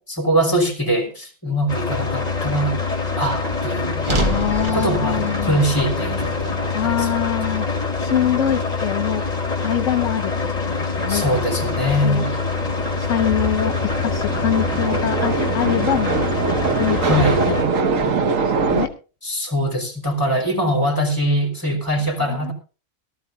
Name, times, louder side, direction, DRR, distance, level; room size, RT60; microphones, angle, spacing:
voice 1, 0.0-2.8 3.2-4.1 4.7-7.1 11.1-12.3 17.0-17.4 19.2-22.5, equal, 15° left, 4 dB, 3.4 m, -22 dB
sound 1, 1.7-17.6, left 4 dB, 30° left, 1.9 m, -25 dB
sound 2, 4.0-8.3, right 1 dB, 25° right, 0.8 m, -29 dB
voice 2, 4.2-5.6 6.7-7.7 8.0-9.2 9.6-10.3 10.6-11.2 12.0-12.2 12.7-16.3 16.8-17.2 17.8-18.9 22.3-22.5, left 10 dB, 70° left, 8 dB, 1.2 m, -24 dB
sound 3, 11.0-18.9, right 5 dB, 85° right, 1.5 m, -24 dB
18.5 x 13.0 x 2.6 m, 0.33 s
omnidirectional pair, 1.3 m